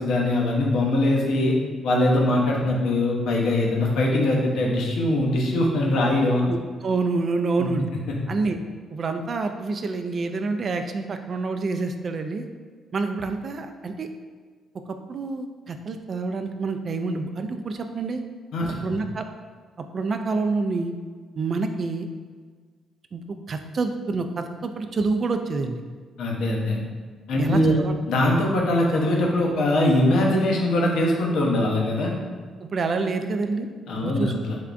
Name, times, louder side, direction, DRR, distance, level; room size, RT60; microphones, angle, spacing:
voice 1, 0.0-1.5 1.8-6.5 7.6-7.7 8.1-8.2 18.5-18.8 26.2-26.8 27.3-32.1 33.9-34.6, left 1 dB, 80° left, -2 dB, 0.7 m, -22 dB
voice 2, 6.5-7.9 8.3-8.6 8.9-12.5 12.9-14.1 15.1-18.2 18.8-19.3 19.9-20.9 21.4-22.1 23.1-25.8 27.4-28.0 32.6-33.7 34.0-34.4, right 3 dB, 45° right, 7 dB, 0.3 m, -27 dB
3.5 x 3.3 x 2.5 m, 1.5 s
cardioid pair, 90°, 0 cm